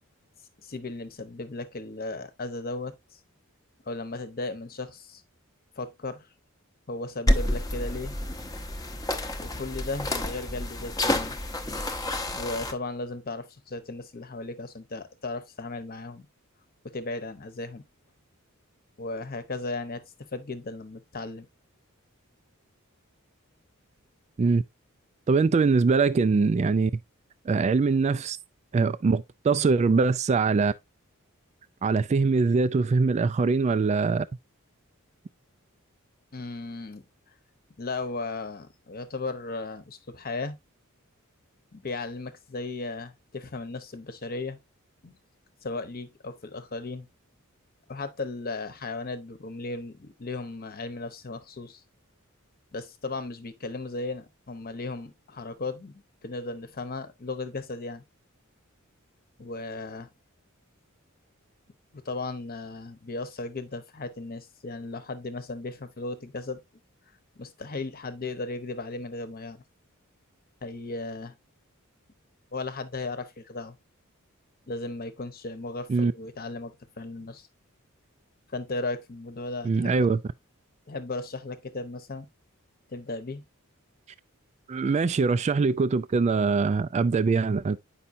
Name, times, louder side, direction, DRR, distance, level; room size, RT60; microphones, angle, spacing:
voice 1, 0.6-3.2 3.9-5.2 5.8-6.3 6.9-8.1 9.4-11.3 12.3-16.3 16.8-17.8 19.0-21.5 36.3-37.0 37.8-40.6 41.7-44.6 45.0-45.1 45.6-47.1 47.9-51.8 52.7-58.0 59.4-60.1 61.9-66.6 67.4-69.6 70.6-71.3 72.5-73.7 74.7-77.5 78.5-80.1 80.9-82.3 82.9-83.4, left 3 dB, 45° left, 1.0 m, -36 dB
sound 1, 7.3-12.7, left 1 dB, 15° left, 0.8 m, -29 dB
voice 2, 25.3-26.9 27.5-28.4 28.7-30.7 31.8-34.3 75.9-76.1 79.6-80.2 84.7-87.8, right 4 dB, 30° right, 0.3 m, -23 dB
8.5 x 5.6 x 2.6 m
head